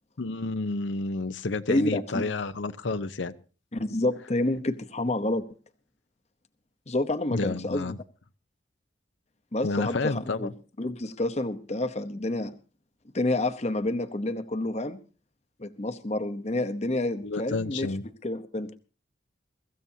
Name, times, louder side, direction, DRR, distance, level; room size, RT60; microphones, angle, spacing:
voice 1, 0.2-3.3 7.3-8.0 9.6-10.5 17.2-18.0, left 3 dB, 85° left, 0.7 m, -30 dB
voice 2, 1.7-2.2 3.7-5.4 6.9-7.9 9.5-10.5 10.8-12.6 13.1-15.0 15.6-17.9 18.2-18.7, left 2 dB, 35° left, 0.9 m, -28 dB
23.5 x 14.5 x 2.8 m
head